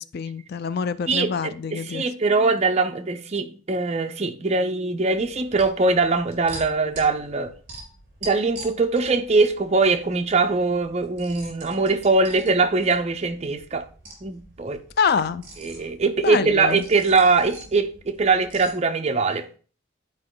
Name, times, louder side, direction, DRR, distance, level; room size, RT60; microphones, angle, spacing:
voice 1, 0.0-2.0 15.0-15.4 16.2-16.8, left 6 dB, 50° left, 0.4 m, -25 dB
voice 2, 1.1-7.5 8.2-13.8 14.2-14.8 15.6-19.5, right 3 dB, 35° right, 0.7 m, -22 dB
sound 1, 5.1-18.7, right 2 dB, 50° right, 3.8 m, -45 dB
10.5 x 4.9 x 3.8 m
head